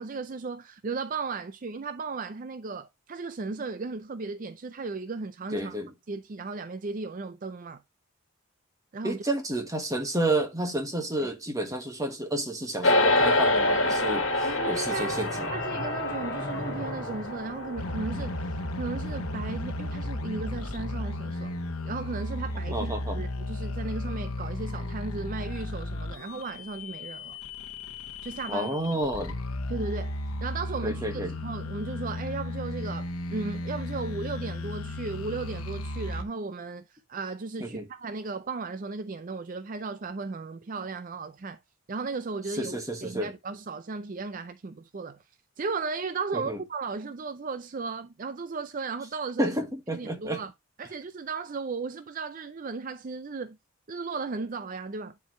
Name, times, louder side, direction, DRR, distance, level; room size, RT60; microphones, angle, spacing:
voice 1, 0.0-5.8 6.1-7.8 8.9-9.2 11.2-11.3 14.4-21.5 21.8-27.4 28.2-28.7 29.7-41.6 41.9-49.6 49.9-50.5 50.8-53.6 53.9-55.1, right 4 dB, 40° right, 0.4 m, -35 dB
voice 2, 5.5-5.9 9.0-15.5 22.7-23.2 28.5-29.4 30.8-31.3 37.6-37.9 42.5-43.3 46.3-46.6 49.4-50.4, right 1 dB, 15° right, 1.6 m, -30 dB
sound 1, 12.8-22.3, left 2 dB, 60° left, 1.7 m, -28 dB
sound 2, 14.4-18.5, left 1 dB, 15° left, 3.9 m, -38 dB
sound 3, 17.8-36.2, left 1 dB, 85° left, 1.0 m, -35 dB
10.0 x 4.7 x 3.1 m
head